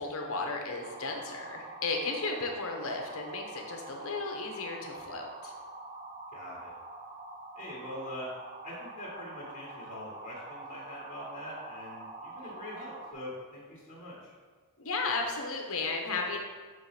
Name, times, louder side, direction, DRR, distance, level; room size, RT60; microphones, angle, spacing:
voice 1, 0.0-5.5 12.4-12.5 14.8-16.4, left 3 dB, 65° left, 2 dB, 1.0 m, -34 dB
sound 1, 0.8-13.1, right 2 dB, 30° right, 0.6 m, -45 dB
voice 2, 6.3-6.7 7.5-8.3 8.6-14.3, left 1 dB, 30° left, -7 dB, 1.6 m, -43 dB
6.6 x 3.2 x 5.8 m, 1.5 s
head